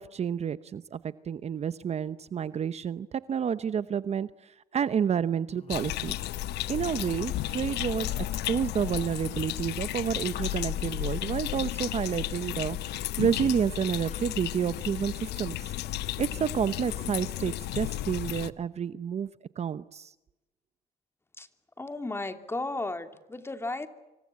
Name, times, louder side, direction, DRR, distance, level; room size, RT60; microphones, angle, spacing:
voice 1, 0.0-6.2 6.7-15.7 16.2-19.3 19.6-20.1, right 8 dB, 40° right, 14 dB, 0.9 m, -30 dB
Cough, 5.5-6.3 6.6-8.7 9.2-11.2 13.1-15.2 16.4-17.7, left 5 dB, 40° left, 7.1 m, -53 dB
sound 1, 5.7-18.5, left 14 dB, 80° left, 1.0 m, -33 dB
voice 2, 21.8-23.9, left 2 dB, 15° left, 8 dB, 2.8 m, -34 dB
27.0 x 25.0 x 8.6 m, 0.98 s
cardioid pair, 110°, 17 cm